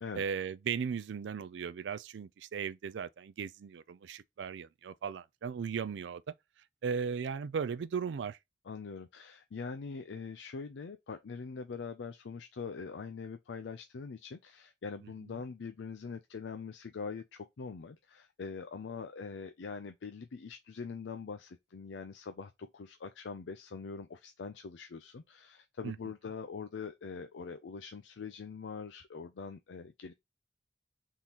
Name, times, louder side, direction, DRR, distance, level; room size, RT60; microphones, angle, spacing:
voice 1, 0.1-6.2 6.8-8.4 25.8-26.0, right 6 dB, 75° right, 0.4 m, -37 dB
voice 2, 8.7-30.1, left 5 dB, 85° left, 0.5 m, -43 dB
3.7 x 3.0 x 4.1 m
head